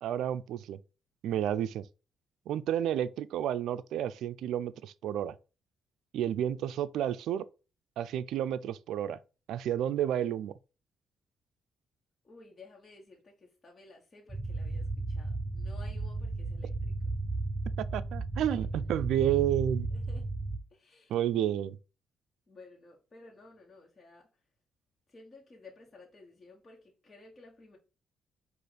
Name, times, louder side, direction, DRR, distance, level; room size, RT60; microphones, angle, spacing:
voice 1, 0.0-0.8 1.2-1.8 2.5-5.4 6.1-7.4 8.0-9.2 9.5-10.5 17.8-19.9 21.1-21.8, right 11 dB, 80° right, 0.3 m, -31 dB
voice 2, 12.2-16.9 18.5-18.6 18.9-19.0 19.9-20.3 20.7-21.2 22.5-24.4 25.1-27.8, left 3 dB, 35° left, 1.3 m, -55 dB
sound 1, 14.3-20.6, right 2 dB, 20° right, 0.6 m, -34 dB
4.9 x 2.5 x 4.0 m
cardioid pair, 90°, 0 cm